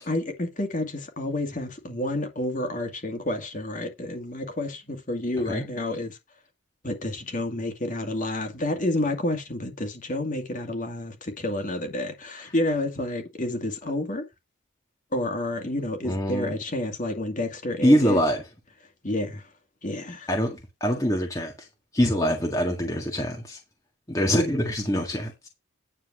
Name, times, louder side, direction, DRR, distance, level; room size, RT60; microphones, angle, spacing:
voice 1, 0.0-6.2 6.8-14.2 15.1-18.2 19.0-19.5 19.8-20.3, left 1 dB, 40° left, 2.2 m, -29 dB
voice 2, 16.0-16.6 17.8-18.4 20.3-21.5 21.9-23.6 24.1-25.3, equal, 15° left, 1.7 m, -24 dB
9.9 x 4.6 x 6.1 m
head